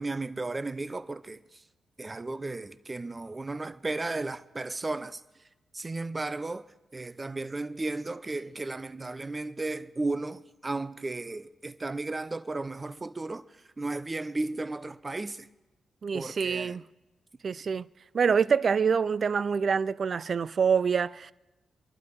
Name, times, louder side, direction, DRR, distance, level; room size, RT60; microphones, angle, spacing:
voice 1, 0.0-1.6 2.0-5.5 5.7-6.7 6.9-15.5 16.1-16.8, right 2 dB, 30° right, 0.8 m, -34 dB
voice 2, 16.0-16.8 17.4-17.9 18.1-21.3, right 6 dB, 55° right, 0.5 m, -26 dB
25.5 x 12.0 x 4.7 m
supercardioid pair, 50°, 0 cm